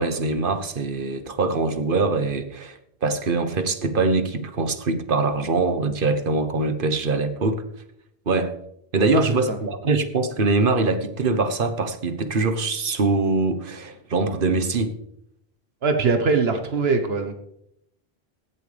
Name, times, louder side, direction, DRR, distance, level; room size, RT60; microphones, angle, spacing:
voice 1, 0.0-7.6 8.3-8.6 8.9-14.9, right 3 dB, 60° right, 10 dB, 1.2 m, -23 dB
voice 2, 9.1-9.6 15.8-17.3, right 4 dB, 75° right, 7 dB, 1.3 m, -22 dB
16.0 x 11.0 x 3.4 m, 0.76 s
omnidirectional pair, 1.0 m